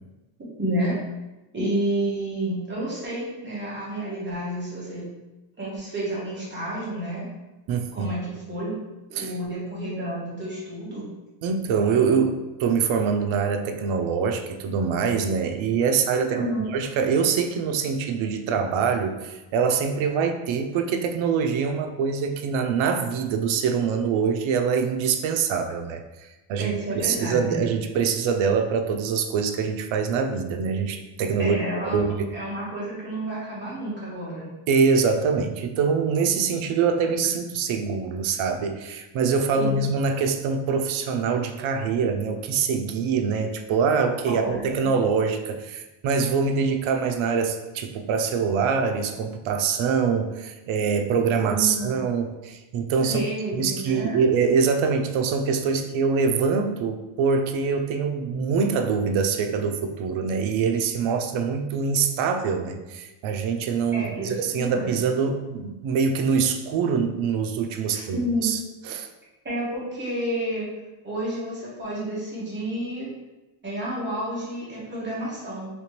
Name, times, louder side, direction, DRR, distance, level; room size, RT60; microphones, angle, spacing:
voice 1, 0.6-1.0 1.5-5.0 5.6-7.2 7.9-8.7 9.1-11.1 16.3-16.7 26.6-27.7 31.4-34.5 39.5-39.8 44.3-45.0 51.4-52.0 53.1-54.2 63.9-64.9 67.9-68.5 69.4-70.7 71.0-73.1 73.6-75.7, right 1 dB, 25° right, -8 dB, 1.1 m, -30 dB
voice 2, 7.7-8.1 9.2-9.3 11.4-16.5 16.7-32.3 34.7-53.2 53.5-68.6 68.8-69.1, right 5 dB, 75° right, 6 dB, 0.5 m, -24 dB
3.3 x 2.8 x 2.9 m, 1.1 s
cardioid pair, 175°, 47 cm